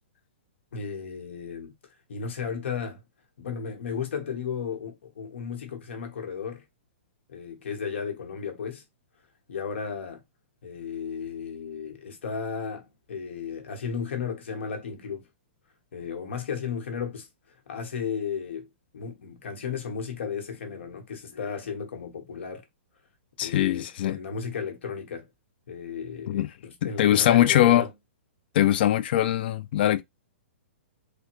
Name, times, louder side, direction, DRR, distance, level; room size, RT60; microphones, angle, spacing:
voice 1, 0.7-1.7 2.1-3.0 3.4-6.6 7.3-8.8 9.5-10.2 10.6-15.2 15.9-17.3 17.7-18.7 18.9-22.6 23.4-25.3 25.7-27.9, left 6 dB, 70° left, 1.1 m, -34 dB
voice 2, 23.4-24.2 26.3-26.5 26.8-27.8 28.5-30.0, left 12 dB, 50° left, 0.4 m, -22 dB
3.4 x 2.2 x 3.0 m
hypercardioid pair, 150°, 7 cm